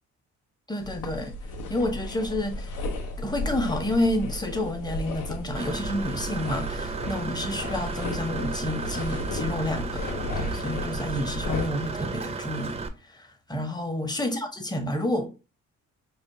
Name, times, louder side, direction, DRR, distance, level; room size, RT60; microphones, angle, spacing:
voice 1, 0.7-1.3 1.7-2.8 3.2-10.0 10.4-12.8 13.0-15.3, left 1 dB, 15° left, 0.7 m, -29 dB
sound 1, 0.8-11.7, left 2 dB, 75° left, 0.8 m, -34 dB
Engine / Mechanisms, 5.6-12.9, right 4 dB, 20° right, 0.5 m, -34 dB
5.0 x 2.4 x 2.6 m
cardioid pair, 90°, 30 cm